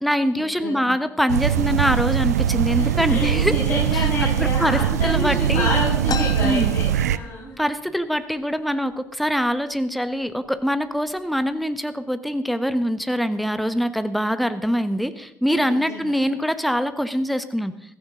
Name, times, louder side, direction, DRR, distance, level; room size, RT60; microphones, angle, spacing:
voice 1, 0.0-3.6 3.9-4.0 4.4-5.7 6.4-6.8 7.6-17.7, equal, ahead, 11 dB, 1.2 m, -24 dB
voice 2, 0.6-1.0 2.7-7.6 15.6-16.1, left 2 dB, 70° left, -9 dB, 5.9 m, -28 dB
sound 1, 1.3-7.2, right 10 dB, 85° right, 0.4 m, -21 dB
sound 2, 6.1-7.7 8.0-8.1 8.4-9.0 9.6-9.7 10.4-10.6 11.1-11.5, left 6 dB, 50° left, 1.3 m, -33 dB
15.5 x 14.5 x 3.9 m, 0.77 s
hypercardioid pair, 50°, 9 cm